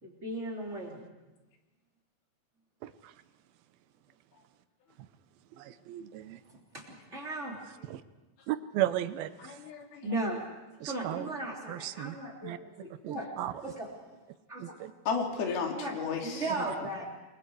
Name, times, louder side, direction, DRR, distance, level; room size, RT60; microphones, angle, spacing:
voice 1, 0.0-1.0 6.7-7.6 10.0-10.4 10.8-13.3 13.6-13.9 14.5-14.7 15.8-16.0 16.2-17.1, right 2 dB, 20° right, -1 dB, 3.2 m, -36 dB
voice 2, 2.8-3.1 5.6-6.4 7.9-8.0 8.5-9.6 10.8-11.3 11.7-12.2 12.4-12.6 13.0-13.5 14.6-14.9, right 14 dB, 80° right, 12 dB, 2.6 m, -35 dB
voice 3, 9.4-10.1 15.1-16.5, left 5 dB, 85° left, 2 dB, 4.3 m, -33 dB
29.0 x 22.5 x 4.8 m, 1.1 s
omnidirectional pair, 4.3 m